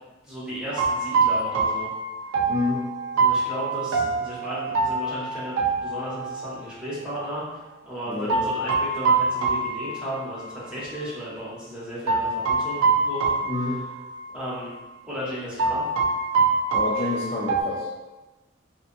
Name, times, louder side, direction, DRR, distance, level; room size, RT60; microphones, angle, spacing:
voice 1, 0.2-1.9 3.1-13.3 13.6-13.7 14.3-14.7 15.0-15.8, equal, 5° right, -10 dB, 0.8 m, -34 dB
sound 1, 0.7-6.5 8.3-10.6 10.8-11.0 12.1-14.3 14.6-14.8 15.6-17.6, right 4 dB, 85° right, 0.4 m, -24 dB
voice 2, 2.5-2.8 8.1-8.4 13.5-13.8 16.7-17.9, left 3 dB, 30° left, -6 dB, 0.3 m, -28 dB
2.7 x 2.3 x 2.5 m, 1.1 s
head